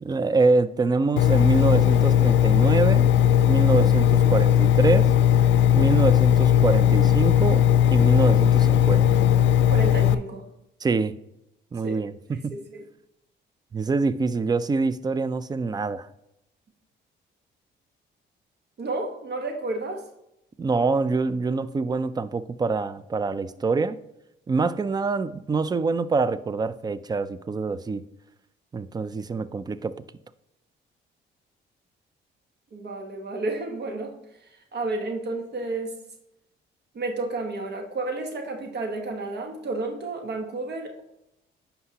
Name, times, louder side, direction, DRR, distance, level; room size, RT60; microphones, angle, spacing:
voice 1, 0.0-3.1 3.4-5.1 5.7-7.6 7.9-9.1 10.8-11.1 11.7-12.5 13.7-16.1 20.6-24.0 24.5-28.0 28.7-29.9, right 4 dB, 20° right, 16 dB, 0.4 m, -25 dB
Engine, 1.2-10.1, left 10 dB, 70° left, 0.4 m, -18 dB
voice 2, 9.7-10.4 11.8-12.0 12.5-12.8 18.8-20.0 32.7-34.1 34.7-35.9 36.9-41.0, right 2 dB, 55° right, 4 dB, 1.1 m, -31 dB
9.5 x 5.7 x 2.8 m, 0.85 s
cardioid pair, 90°, 20 cm